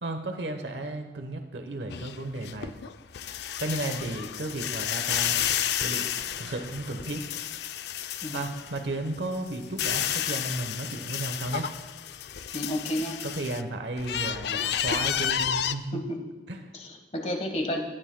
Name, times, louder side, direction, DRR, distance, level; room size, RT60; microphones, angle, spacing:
voice 1, 0.0-2.8 3.6-5.4 5.8-6.1 6.4-7.2 8.3-11.7 13.2-16.0 16.5-16.7, right 2 dB, 70° right, 6 dB, 1.0 m, -34 dB
sound 1, 1.9-8.8 9.2-13.6 14.0-15.7, left 9 dB, 60° left, 0.4 m, -31 dB
voice 2, 12.5-13.2 15.9-16.2 16.7-17.8, equal, 35° left, 3 dB, 1.4 m, -31 dB
16.5 x 13.0 x 2.2 m, 1.2 s
head